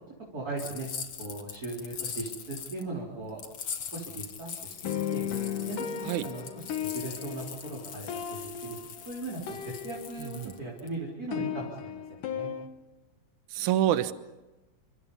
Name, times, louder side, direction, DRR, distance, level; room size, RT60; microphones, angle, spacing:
voice 1, 0.3-0.9 1.2-3.4 3.9-4.7 5.1-5.2 5.7-6.5 6.8-8.8 9.1-12.0 12.3-12.5, right 2 dB, 25° right, -3 dB, 4.3 m, -38 dB
sound 1, 0.6-2.8 3.4-10.9, left 7 dB, 50° left, 1.9 m, -41 dB
sound 2, 4.8-10.6 10.9-12.7, left 9 dB, 65° left, 3.1 m, -36 dB
voice 2, 10.2-10.5 13.5-14.1, right 12 dB, 70° right, 11 dB, 2.2 m, -27 dB
28.5 x 26.0 x 5.6 m, 1.1 s
omnidirectional pair, 4.1 m